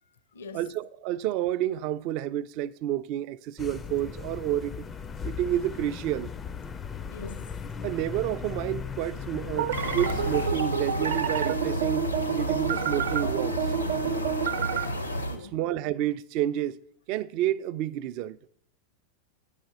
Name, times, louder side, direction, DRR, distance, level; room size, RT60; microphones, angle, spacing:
voice 1, 0.0-0.8 7.1-7.7 12.2-12.4 15.2-15.6, left 4 dB, 60° left, 0.6 m, -45 dB
voice 2, 0.5-4.9 5.2-6.3 7.8-12.1 12.4-13.9 15.5-16.8 17.1-18.4, right 12 dB, 45° right, 0.4 m, -30 dB
sound 1, 3.6-10.5, left 6 dB, 20° left, 0.4 m, -37 dB
sound 2, 9.5-14.9, right 8 dB, 60° right, 0.7 m, -29 dB
sound 3, 9.7-15.4, equal, 85° left, 1.0 m, -31 dB
8.9 x 5.0 x 6.8 m
figure-of-eight pair, 90°, 0 cm